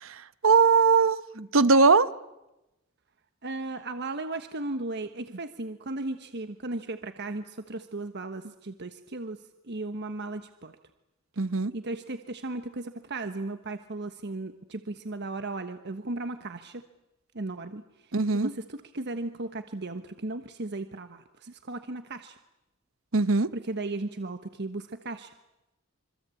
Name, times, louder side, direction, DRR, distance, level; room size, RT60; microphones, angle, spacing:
voice 1, 0.0-1.2 1.5-2.1 11.4-11.7 18.1-18.5 23.1-23.5, right 4 dB, 70° right, 1.0 m, -21 dB
voice 2, 3.4-10.8 11.7-16.8 17.3-17.8 18.3-22.4 23.5-25.3, right 2 dB, 55° right, 1.3 m, -36 dB
26.5 x 25.0 x 8.5 m
head